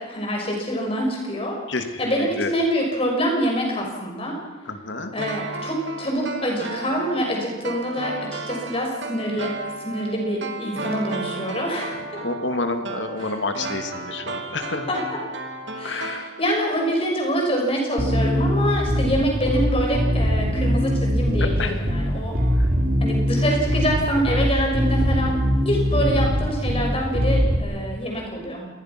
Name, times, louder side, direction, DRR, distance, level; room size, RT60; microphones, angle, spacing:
voice 1, 0.0-1.6 2.0-4.4 5.1-9.5 9.8-12.0 14.9-15.0 15.8-22.3 23.0-28.7, equal, 30° left, 0 dB, 6.3 m, -25 dB
voice 2, 1.7-2.5 4.6-5.1 12.2-14.9 15.8-16.3 21.4-21.8 22.6-22.7, left 3 dB, 60° left, 6 dB, 2.4 m, -29 dB
sound 1, 5.2-16.8 17.1-17.2, right 3 dB, 60° right, 2.6 m, -34 dB
Bass guitar, 18.0-27.6, equal, 45° right, 4.0 m, -22 dB
27.5 x 21.0 x 6.1 m, 1.2 s
head